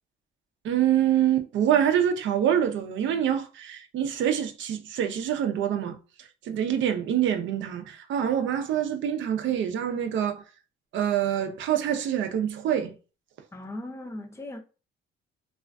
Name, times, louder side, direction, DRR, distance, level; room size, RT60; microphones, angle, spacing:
voice 1, 0.6-10.4 10.9-13.0, right 10 dB, 70° right, 0.5 m, -26 dB
voice 2, 13.5-14.6, left 1 dB, 15° left, 0.5 m, -38 dB
2.4 x 2.4 x 2.2 m
cardioid pair, 90°, 20 cm